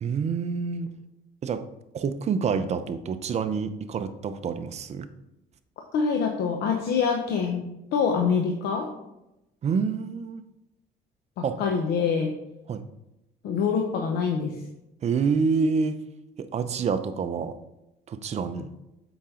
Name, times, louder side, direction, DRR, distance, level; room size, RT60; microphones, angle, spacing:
voice 1, 0.0-0.9 1.4-1.6 1.9-5.1 9.6-10.4 11.4-11.6 12.7-12.8 15.0-16.0 16.4-17.6 18.1-18.7, right 5 dB, 40° right, 10 dB, 0.6 m, -27 dB
voice 2, 5.9-8.9 11.4-12.3 13.4-14.6, left 6 dB, 75° left, 2 dB, 0.8 m, -25 dB
7.2 x 5.1 x 3.7 m, 0.91 s
cardioid pair, 110°, 17 cm